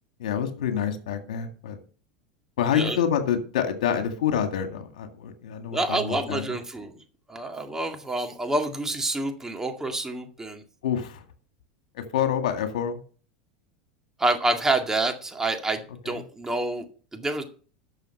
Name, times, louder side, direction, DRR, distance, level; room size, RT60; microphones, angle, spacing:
voice 1, 0.2-1.8 2.6-6.6 10.8-11.2 11.9-13.0 16.0-16.2, left 8 dB, 75° left, 7 dB, 2.0 m, -27 dB
voice 2, 5.7-7.0 7.3-10.6 14.2-16.8 17.1-17.4, right 2 dB, 15° right, 4 dB, 2.1 m, -27 dB
12.0 x 6.8 x 5.5 m, 0.40 s
hypercardioid pair, 95°, 4 cm